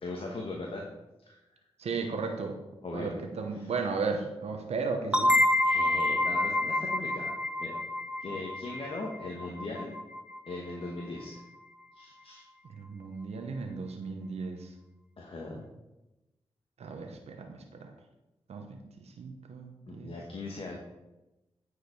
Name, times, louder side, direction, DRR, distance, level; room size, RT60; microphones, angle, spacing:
voice 1, 0.0-0.9 1.3-1.4 2.8-3.1 3.5-3.7 5.6-7.3 7.6-7.8 8.2-10.0 10.5-11.4 11.9-12.4 15.2-15.6 19.9-20.8, left 2 dB, 55° left, -1 dB, 1.3 m, -39 dB
voice 2, 1.8-2.6 2.9-5.3 12.8-14.7 16.8-17.9 18.5-20.1, right 4 dB, 80° right, 4 dB, 1.0 m, -35 dB
sound 1, 5.1-10.6, left 1 dB, 10° right, 0.8 m, -28 dB
9.0 x 4.9 x 4.9 m, 0.98 s
cardioid pair, 50°, 11 cm